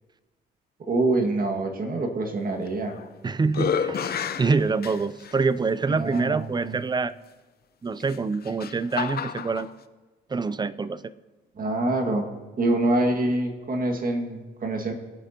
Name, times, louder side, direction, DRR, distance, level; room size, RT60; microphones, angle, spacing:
voice 1, 0.9-3.0 5.9-6.8 11.6-12.3 12.6-14.9, right 2 dB, 45° right, 2 dB, 2.0 m, -25 dB
sound 1, 2.7-3.1 3.5-5.4 6.1-6.2 8.0-9.7, left 7 dB, 50° left, 0.7 m, -30 dB
voice 2, 3.2-7.1 7.8-9.7 10.3-11.0, right 4 dB, 20° right, 16 dB, 0.4 m, -26 dB
22.0 x 8.9 x 2.9 m, 1.3 s
cardioid pair, 90°, 20 cm